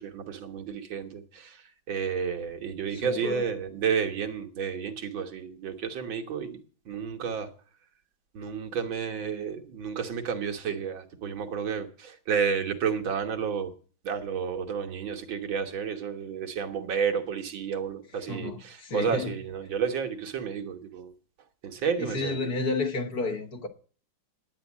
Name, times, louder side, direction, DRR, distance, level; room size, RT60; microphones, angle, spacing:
voice 1, 0.0-1.6 1.9-6.6 6.9-7.5 8.3-13.7 14.0-21.1 21.6-22.5, right 6 dB, 70° right, 2.1 m, -31 dB
voice 2, 2.9-3.4 18.3-19.3 22.0-23.7, left 3 dB, 50° left, 1.9 m, -31 dB
11.0 x 9.1 x 7.3 m
omnidirectional pair, 2.2 m